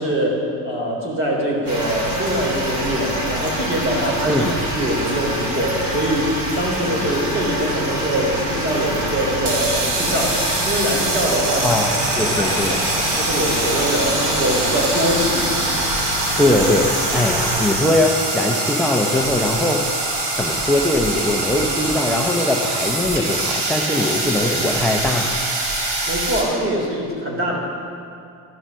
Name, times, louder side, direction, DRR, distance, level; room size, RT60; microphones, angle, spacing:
voice 1, 0.0-4.5 4.8-11.9 12.1-15.5 26.1-27.6, equal, 30° right, -1 dB, 3.4 m, -23 dB
sound 1, 1.7-17.7, equal, 50° right, 3.6 m, -26 dB
voice 2, 4.3-4.6 11.6-12.8 16.4-19.9 20.4-25.4, left 1 dB, ahead, 0 dB, 0.6 m, -21 dB
sound 2, 9.4-26.4, right 2 dB, 85° right, 4.1 m, -24 dB
14.0 x 12.0 x 6.3 m, 2.5 s
cardioid pair, 150°, 42 cm